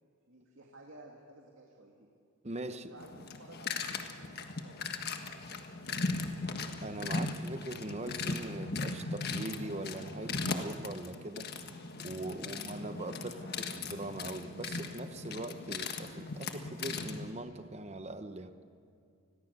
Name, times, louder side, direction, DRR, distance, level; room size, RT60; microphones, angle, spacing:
voice 1, 0.3-2.1 2.9-5.2 5.5-6.3, right 1 dB, 70° right, 0 dB, 2.4 m, -55 dB
voice 2, 2.4-2.9 6.8-11.5 12.0-18.5, right 2 dB, 30° right, 9 dB, 0.9 m, -41 dB
sound 1, 3.0-17.3, left 3 dB, 50° left, 1.5 m, -38 dB
29.0 x 21.0 x 6.8 m, 2.3 s
head